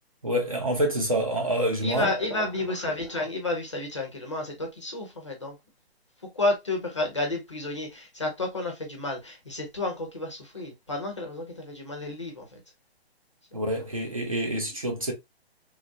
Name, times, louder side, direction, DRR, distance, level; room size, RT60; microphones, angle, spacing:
voice 1, 0.2-2.1 13.5-15.1, right 1 dB, 35° right, 0.5 m, -27 dB
voice 2, 1.8-5.6 6.3-12.6 13.5-13.7, left 2 dB, 30° left, 0.5 m, -31 dB
3.0 x 2.4 x 2.5 m
hypercardioid pair, 180°, 32 cm